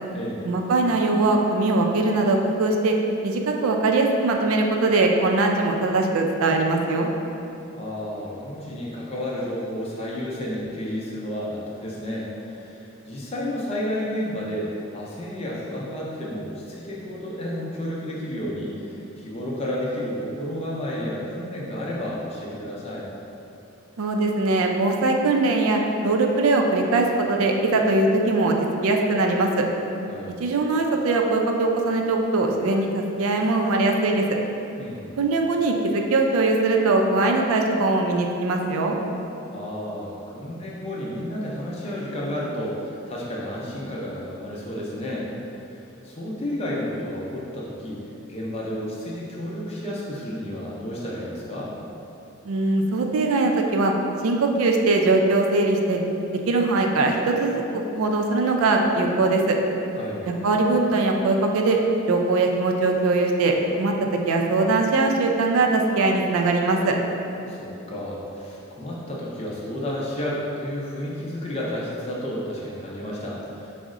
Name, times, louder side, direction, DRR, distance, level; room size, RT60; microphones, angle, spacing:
voice 1, 0.4-3.0 3.2-7.1 24.0-28.6 28.8-29.7 30.4-34.2 35.2-39.0 52.5-53.9 54.2-56.0 56.5-59.6 60.3-61.8 62.1-67.0, right 2 dB, 80° right, 2 dB, 0.4 m, -21 dB
voice 2, 7.7-23.1 30.1-30.3 34.8-35.1 39.5-45.3 46.0-48.0 48.3-51.7 60.0-60.3 67.5-73.7, left 1 dB, 30° left, -5 dB, 0.5 m, -31 dB
4.6 x 2.1 x 3.6 m, 2.8 s
head